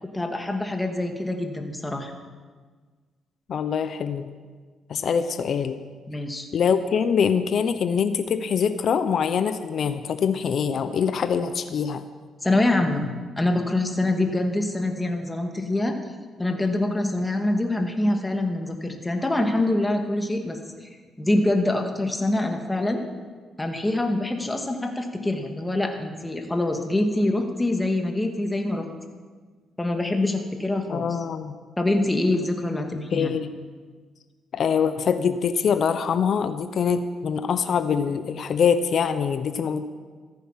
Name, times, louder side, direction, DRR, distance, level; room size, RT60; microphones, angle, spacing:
voice 1, 0.0-2.1 6.1-6.5 12.4-13.1 13.4-15.9 16.4-20.9 21.2-23.0 23.6-28.9 29.8-31.1 31.8-33.3, left 2 dB, 15° left, 4 dB, 2.1 m, -25 dB
voice 2, 3.5-4.3 4.9-5.8 6.5-12.0 30.9-31.5 33.1-33.5 34.5-39.9, left 7 dB, 60° left, 10 dB, 0.8 m, -24 dB
14.5 x 14.0 x 5.8 m, 1.5 s
cardioid pair, 90°, 0 cm